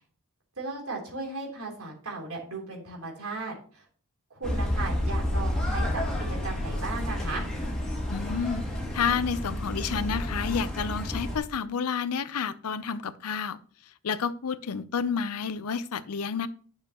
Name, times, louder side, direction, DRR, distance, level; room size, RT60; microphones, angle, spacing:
voice 1, 0.6-3.8 4.3-7.5, right 3 dB, 75° right, -1 dB, 3.4 m, -36 dB
sound 1, 4.4-11.4, left 1 dB, 5° left, 2.5 m, -30 dB
voice 2, 8.1-8.7 8.9-13.6 14.0-16.5, left 6 dB, 85° left, 15 dB, 0.6 m, -30 dB
10.0 x 6.5 x 2.9 m, 0.43 s
head